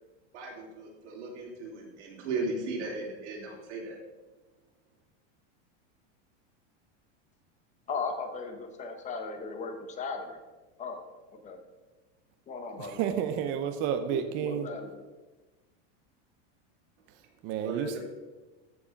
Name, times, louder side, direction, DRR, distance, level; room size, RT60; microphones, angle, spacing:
voice 1, 0.3-4.0 17.6-18.0, right 3 dB, 85° right, -1 dB, 3.2 m, -36 dB
voice 2, 7.9-10.4 10.8-11.0 11.3-11.6 12.5-13.0 14.1-15.0, left 4 dB, 20° left, 6 dB, 0.8 m, -37 dB
voice 3, 12.8-14.7 17.4-18.0, right 8 dB, 35° right, 8 dB, 0.5 m, -31 dB
14.0 x 4.8 x 5.1 m, 1.2 s
supercardioid pair, 165°, 35 cm